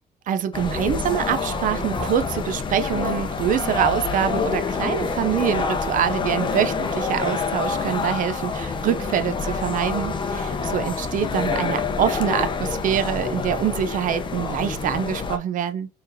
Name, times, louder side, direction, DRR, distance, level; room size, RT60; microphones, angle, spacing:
voice 1, 0.3-15.9, right 9 dB, 50° right, 0.5 m, -25 dB
sound 1, 0.5-15.4, left 4 dB, 30° left, 0.6 m, -27 dB
4.4 x 3.2 x 2.6 m
cardioid pair, 110°, 17 cm